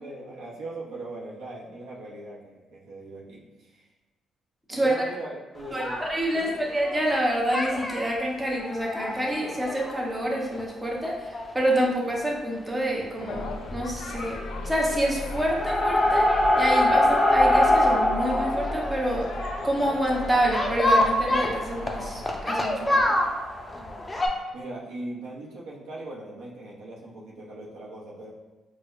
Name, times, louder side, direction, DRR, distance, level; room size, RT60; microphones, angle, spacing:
voice 1, 0.0-3.8 4.7-6.0 6.3-6.6 23.7-28.3, right 2 dB, 90° right, -4 dB, 0.7 m, -40 dB
voice 2, 4.7-5.0 5.7-19.3 19.6-23.1, right 1 dB, 15° right, -2 dB, 0.7 m, -27 dB
sound 1, 5.6-7.2 7.5-8.1 8.6-10.6 11.0-11.1 11.3-11.4 11.7-11.8 13.2-13.4 13.7-14.2 14.4-15.0 15.3-24.3, left 1 dB, 20° left, 0.4 m, -25 dB
sound 2, 13.2-22.4, left 2 dB, 80° left, 0.4 m, -37 dB
4.5 x 2.1 x 2.4 m, 1.2 s
cardioid pair, 90°, 0 cm